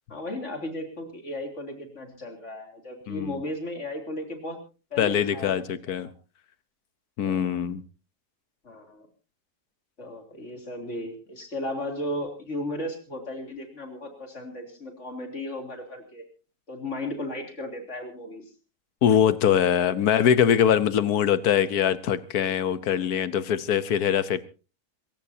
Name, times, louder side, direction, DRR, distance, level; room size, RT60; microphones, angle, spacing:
voice 1, 0.1-4.6 4.9-5.9 7.2-7.4 8.6-9.1 10.0-16.3 16.7-18.5, left 1 dB, 50° left, 4 dB, 3.6 m, -35 dB
voice 2, 3.1-3.4 5.0-6.1 7.2-7.8 19.0-24.4, left 9 dB, 85° left, 15 dB, 1.5 m, -23 dB
26.5 x 15.5 x 2.8 m, 0.34 s
omnidirectional pair, 1.6 m